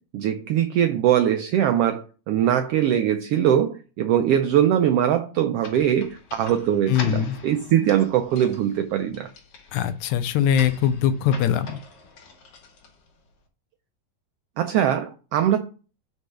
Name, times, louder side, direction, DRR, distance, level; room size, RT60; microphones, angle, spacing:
voice 1, 0.1-9.3 14.6-15.6, right 10 dB, 85° right, 1.3 m, -21 dB
sound 1, 5.6-13.3, left 4 dB, 60° left, 2.3 m, -43 dB
voice 2, 6.9-7.4 9.7-11.8, left 9 dB, 80° left, 1.9 m, -22 dB
5.4 x 4.7 x 6.2 m
omnidirectional pair, 3.3 m